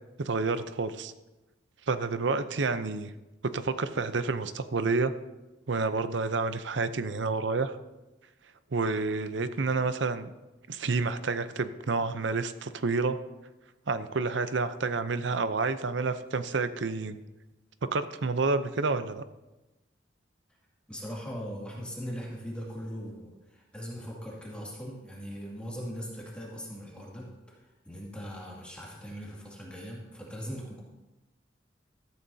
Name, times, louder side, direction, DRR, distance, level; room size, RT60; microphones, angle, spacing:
voice 1, 0.2-1.1 1.9-3.1 3.5-5.1 5.7-7.8 8.7-10.3 10.7-13.2 13.9-17.2 17.8-19.2, right 4 dB, 75° right, 11 dB, 0.7 m, -29 dB
voice 2, 20.9-30.8, equal, 5° left, -4 dB, 2.2 m, -40 dB
14.0 x 13.5 x 2.8 m, 1.0 s
head